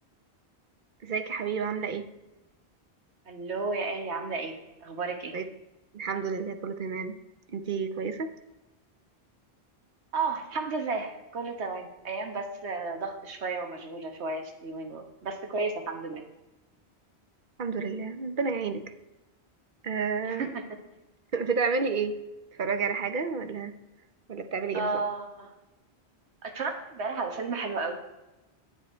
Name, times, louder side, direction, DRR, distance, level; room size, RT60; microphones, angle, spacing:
voice 1, 1.0-2.1 5.3-5.5 5.9-7.2 7.5-8.3 17.6-18.8 19.8-20.5 21.3-22.2 22.6-23.7 24.3-25.0, right 5 dB, 55° right, 9 dB, 0.9 m, -30 dB
voice 2, 3.3-4.5 4.8-5.3 10.1-16.2 20.2-20.6 24.7-25.5 26.4-28.0, right 3 dB, 85° right, 5 dB, 1.5 m, -33 dB
9.9 x 9.4 x 4.4 m, 1.0 s
omnidirectional pair, 1.1 m